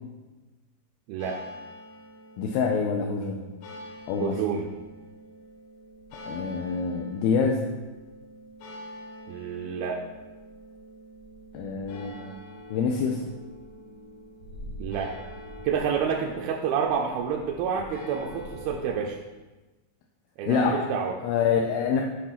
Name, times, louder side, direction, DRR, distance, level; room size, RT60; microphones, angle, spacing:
sound 1, 1.2-19.1, equal, 60° left, 2.5 m, -44 dB
voice 1, 2.4-3.4 4.1-4.4 6.2-7.7 11.5-12.3 12.7-13.2 20.5-20.9 21.2-22.0, left 5 dB, 80° left, 2 dB, 2.4 m, -26 dB
voice 2, 4.2-4.7 9.3-10.0 14.8-15.1 15.6-19.2 20.4-21.2, right 7 dB, 80° right, 0 dB, 2.3 m, -28 dB
8.6 x 4.0 x 5.8 m, 1.2 s
omnidirectional pair, 4.5 m